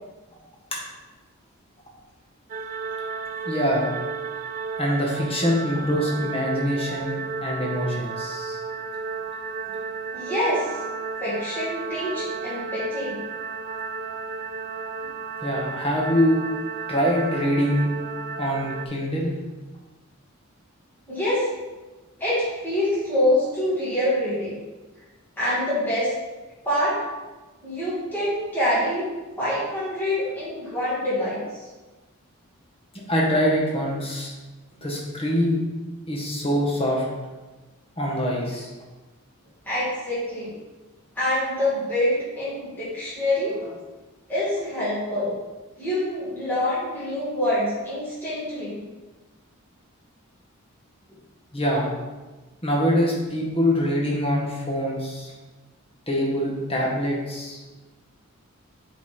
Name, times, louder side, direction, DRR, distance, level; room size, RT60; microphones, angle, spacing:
sound 1, 2.5-18.9, right 5 dB, 35° right, 0.4 m, -33 dB
voice 1, 3.4-3.9 4.8-8.6 15.4-16.4 16.9-17.9 18.4-19.3 33.1-34.3 34.8-35.6 36.1-37.1 38.0-38.7 51.5-51.9 52.6-55.3 56.1-57.6, equal, 25° left, -3 dB, 1.5 m, -24 dB
voice 2, 10.1-10.8 11.2-13.2 21.1-21.5 22.2-24.6 25.4-26.1 26.6-27.0 27.6-29.1 29.4-31.6 39.6-40.6 41.2-43.7 44.3-45.3 45.8-48.8, left 1 dB, 10° left, -11 dB, 2.4 m, -25 dB
8.2 x 4.2 x 4.3 m, 1.2 s
head